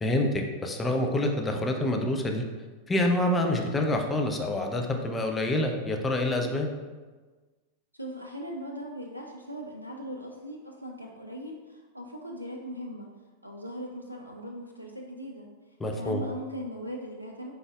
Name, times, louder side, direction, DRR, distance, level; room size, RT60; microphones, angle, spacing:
voice 1, 0.0-2.5 2.9-6.7 15.8-16.2, left 1 dB, 15° left, 2 dB, 0.4 m, -27 dB
voice 2, 7.9-13.1 13.4-15.5 15.9-17.5, equal, 90° right, 0 dB, 0.3 m, -39 dB
3.9 x 3.4 x 2.3 m, 1.3 s
figure-of-eight pair, 90°, 0 cm